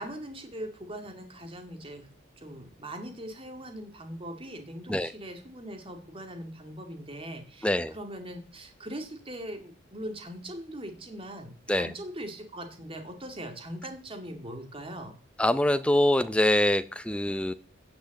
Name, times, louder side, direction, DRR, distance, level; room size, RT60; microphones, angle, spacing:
voice 1, 0.0-2.1 2.4-15.2, right 1 dB, 25° right, 5 dB, 2.2 m, -41 dB
voice 2, 7.6-7.9 11.7-11.9 15.4-17.5, left 1 dB, 5° left, 13 dB, 0.6 m, -24 dB
16.5 x 6.0 x 7.7 m, 0.43 s
head